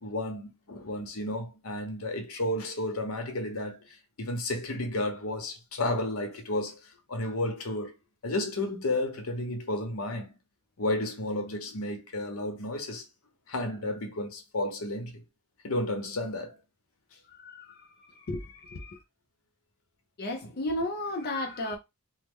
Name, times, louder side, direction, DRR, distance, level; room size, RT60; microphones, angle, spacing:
voice 1, 0.0-7.9 8.2-10.3 10.8-13.0 13.5-15.2 15.6-16.6 20.4-20.5, left 1 dB, 80° left, 0.9 m, -32 dB
voice 2, 17.3-19.0 20.2-21.8, left 1 dB, 45° left, 0.5 m, -34 dB
3.1 x 2.1 x 3.5 m
head